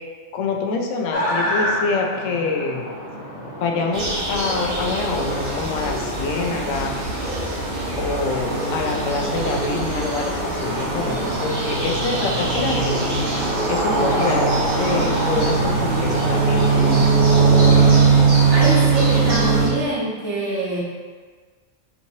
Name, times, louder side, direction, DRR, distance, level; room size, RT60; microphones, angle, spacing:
voice 1, 0.3-2.9 3.6-7.0 8.0-13.2 13.7-17.3, left 4 dB, 80° left, 2 dB, 1.0 m, -26 dB
sound 1, 1.1-19.2, equal, 55° left, 1.1 m, -33 dB
sound 2, 3.9-19.7, right 4 dB, 50° right, 1.1 m, -20 dB
voice 2, 18.5-20.8, right 2 dB, 65° right, -7 dB, 1.4 m, -24 dB
5.5 x 3.0 x 2.7 m, 1.5 s
omnidirectional pair, 1.3 m